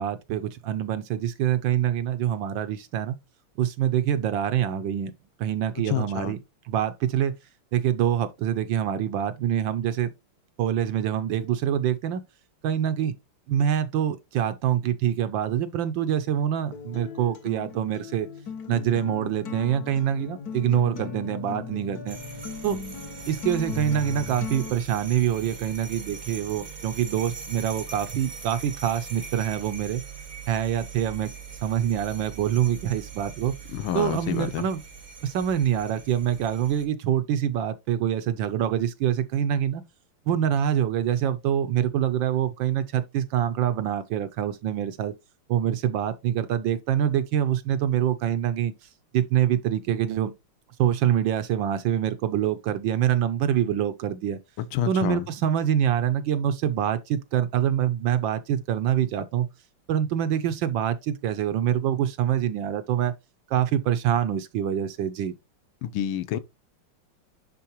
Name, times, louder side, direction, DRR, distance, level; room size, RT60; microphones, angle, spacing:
voice 1, 0.0-3.1 3.6-5.1 5.4-6.4 6.7-7.3 7.7-10.1 10.6-12.2 12.6-13.1 13.5-18.3 18.7-22.2 22.6-22.8 23.3-30.0 30.5-31.3 31.6-33.5 33.9-34.8 35.2-39.8 40.3-45.1 45.5-48.7 49.1-50.3 50.8-54.4 54.9-59.5 59.9-63.1 63.5-65.3, right 10 dB, 75° right, 1.2 m, -25 dB
voice 2, 5.9-6.3 33.7-34.6 54.6-55.2 65.8-66.4, left 10 dB, 75° left, 1.4 m, -28 dB
Acoustic guitar, 16.7-24.7, left 5 dB, 55° left, 1.3 m, -37 dB
sound 1, 22.1-36.8, right 5 dB, 35° right, 0.8 m, -41 dB
10.5 x 3.7 x 3.0 m
omnidirectional pair, 2.4 m